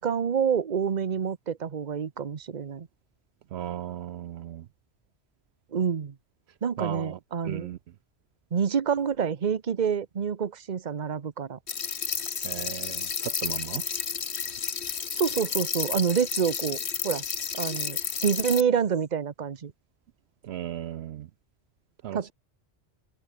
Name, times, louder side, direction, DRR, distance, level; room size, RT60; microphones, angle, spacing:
voice 1, 0.0-2.9 5.7-6.1 6.6-7.7 8.5-11.6 15.1-16.8 17.0-17.2 17.6-19.7 22.1-22.3, right 7 dB, 40° right, 1.0 m, -27 dB
voice 2, 3.5-4.7 6.8-7.2 7.4-7.8 12.4-13.8 20.4-21.3 22.0-22.3, right 12 dB, 70° right, 0.8 m, -36 dB
sound 1, 11.7-18.6, left 7 dB, 70° left, 1.5 m, -31 dB
open air
omnidirectional pair, 1.2 m